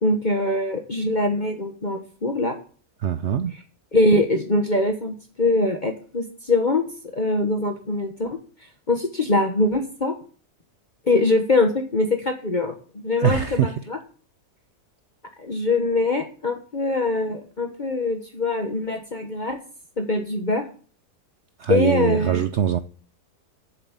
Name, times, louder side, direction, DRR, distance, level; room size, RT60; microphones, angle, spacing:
voice 1, 0.0-2.5 3.9-8.4 8.9-10.1 11.1-12.8 13.0-14.0 15.4-19.6 20.0-20.7 21.7-22.4, left 2 dB, 35° left, 1.3 m, -23 dB
voice 2, 3.0-3.6 13.2-13.7 21.6-22.8, right 9 dB, 60° right, 0.8 m, -22 dB
7.9 x 7.1 x 8.2 m
omnidirectional pair, 1.6 m